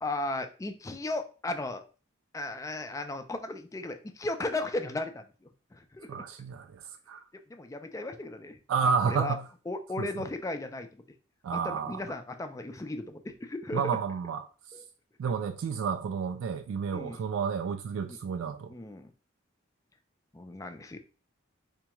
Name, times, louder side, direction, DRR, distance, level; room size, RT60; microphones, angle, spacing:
voice 1, 0.0-1.8 2.3-5.2 5.7-6.1 7.5-9.4 9.7-11.0 11.5-14.0 14.7-14.8 16.9-17.2 18.1-18.2 18.7-19.1 20.3-21.0, left 2 dB, 15° left, 0.3 m, -36 dB
voice 2, 6.1-6.8 7.1-7.2 8.7-9.4 10.0-10.2 11.4-12.0 13.7-14.4 15.2-18.7, right 6 dB, 80° right, 0.3 m, -30 dB
4.3 x 2.3 x 2.9 m
head